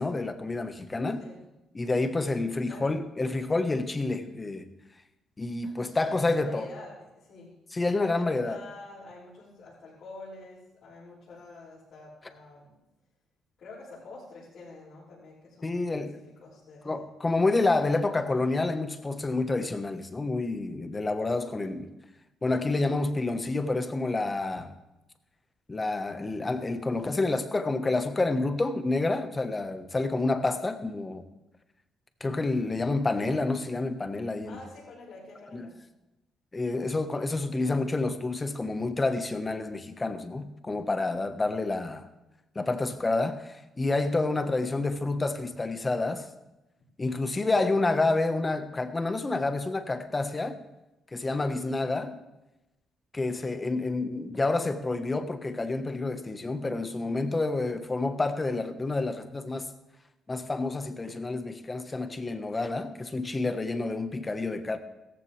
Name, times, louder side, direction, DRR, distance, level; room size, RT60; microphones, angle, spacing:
voice 1, 0.0-1.2 1.7-4.7 5.4-6.7 7.7-8.6 15.6-16.2 16.8-21.9 22.4-24.7 25.7-31.2 32.2-34.6 35.5-35.7 36.5-42.1 42.5-46.3 47.0-50.6 51.1-52.2 53.1-59.7 60.3-64.8, left 2 dB, 25° left, 1.3 m, -28 dB
voice 2, 2.6-3.0 6.0-7.5 7.8-12.7 13.6-17.5 34.4-35.8 57.4-57.8, left 2 dB, 65° left, 6.5 m, -47 dB
16.5 x 14.5 x 3.4 m
cardioid pair, 90°, 0 cm